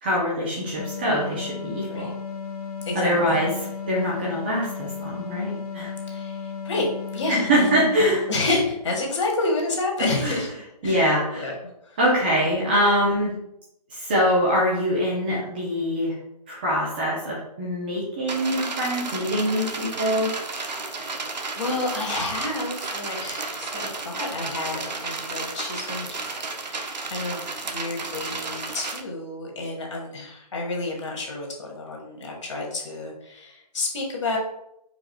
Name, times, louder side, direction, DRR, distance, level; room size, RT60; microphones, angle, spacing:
voice 1, 0.0-2.1 2.9-3.5 3.9-5.9 7.3-8.3 10.2-10.4 10.8-11.5 12.0-13.4 13.9-16.1 16.5-20.3, equal, 15° right, -6 dB, 0.6 m, -23 dB
sound 1, 0.8-8.9, left 6 dB, 60° left, 0.7 m, -35 dB
voice 2, 2.9-3.4 6.1-11.6 11.8-12.0 21.0-26.3 26.6-34.4, left 2 dB, 45° left, 0 dB, 1.6 m, -30 dB
sound 2, 18.3-29.0, right 3 dB, 90° right, 0.8 m, -32 dB
4.8 x 4.8 x 2.2 m, 0.79 s
hypercardioid pair, 165°, 21 cm